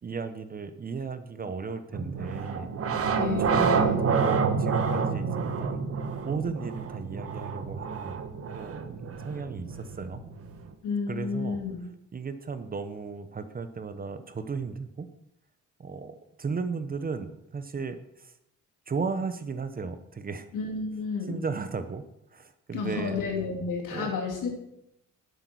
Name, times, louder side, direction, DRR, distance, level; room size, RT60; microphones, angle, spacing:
voice 1, 0.0-2.7 3.2-3.7 4.0-5.8 6.2-8.2 8.5-10.2 11.1-11.6 12.1-15.1 15.8-18.3 18.9-20.5 21.3-22.0 22.3-23.2 23.9-24.2, right 5 dB, 30° right, 10 dB, 0.8 m, -35 dB
sound 1, 1.9-10.7, right 5 dB, 45° right, 1.2 m, -28 dB
voice 2, 3.1-4.1 10.8-11.8 20.5-21.4 22.7-24.5, left 5 dB, 75° left, 1 dB, 3.2 m, -31 dB
11.5 x 8.1 x 6.2 m, 0.79 s
cardioid pair, 150°, 32 cm